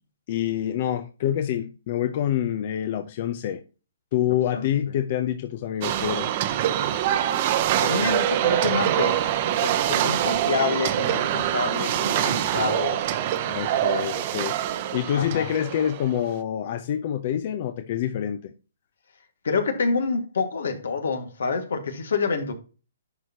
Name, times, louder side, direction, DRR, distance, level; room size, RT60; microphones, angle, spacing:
voice 1, 0.3-3.6 4.1-6.4 13.5-14.6 14.9-18.5, left 10 dB, 45° left, 0.6 m, -26 dB
voice 2, 4.5-4.9 7.8-13.0 13.5-13.6 13.9-14.1 15.2-15.5 19.4-22.5, left 4 dB, 80° left, 1.8 m, -28 dB
sound 1, 5.8-16.2, right 11 dB, 40° right, 0.7 m, -24 dB
11.0 x 4.4 x 2.9 m
hypercardioid pair, 150°, 0 cm